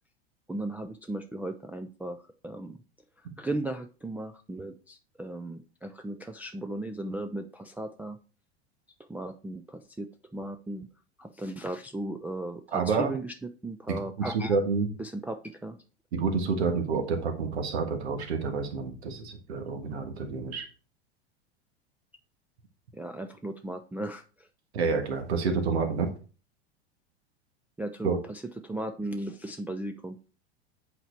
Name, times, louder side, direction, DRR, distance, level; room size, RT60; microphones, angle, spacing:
voice 1, 0.5-2.8 3.4-8.2 9.1-10.9 11.2-13.3 13.6-14.6 15.0-15.8 22.9-24.5 27.8-30.2, right 1 dB, 5° right, 3 dB, 0.4 m, -36 dB
voice 2, 12.7-13.1 14.3-14.9 16.1-20.6 24.7-26.1 28.0-28.2, right 5 dB, 75° right, 6 dB, 1.6 m, -28 dB
7.9 x 4.5 x 4.5 m, 0.36 s
hypercardioid pair, 90°, 33 cm